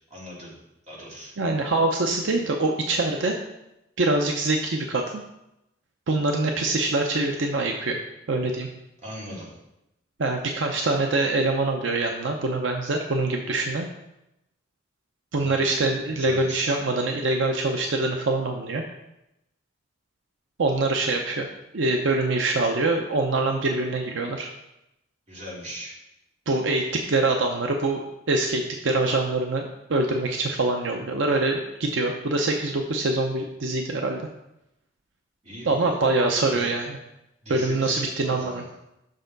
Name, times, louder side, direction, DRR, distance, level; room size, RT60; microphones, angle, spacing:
voice 1, 0.1-0.5 0.8-1.3 9.0-9.5 15.3-15.7 16.1-16.8 25.3-26.0 35.4-36.0 36.2-36.7 37.4-38.7, equal, 35° right, -5 dB, 2.2 m, -39 dB
voice 2, 1.4-3.4 4.0-5.2 6.1-8.0 8.3-8.7 10.2-13.9 15.3-18.8 20.6-21.5 21.7-24.5 26.5-34.2 35.6-37.0 37.5-38.6, right 2 dB, 75° right, 3 dB, 0.6 m, -24 dB
6.6 x 6.1 x 3.9 m, 0.88 s
head